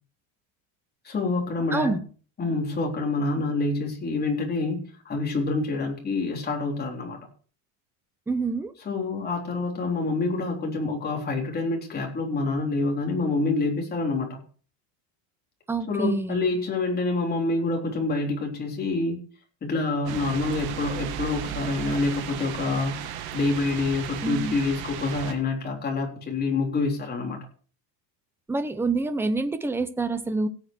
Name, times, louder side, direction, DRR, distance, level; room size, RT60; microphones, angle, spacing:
voice 1, 1.1-2.0 2.4-4.8 5.1-7.2 8.9-14.4 15.9-19.2 19.6-27.4, left 3 dB, 25° left, 0 dB, 3.8 m, -27 dB
voice 2, 1.7-2.0 8.3-8.7 15.7-16.5 24.2-24.5 28.5-30.5, right 3 dB, 5° right, 10 dB, 0.8 m, -27 dB
sound 1, 20.1-25.3, right 10 dB, 65° right, 2.1 m, -35 dB
17.0 x 8.5 x 4.5 m, 0.39 s
cardioid pair, 155°, 40 cm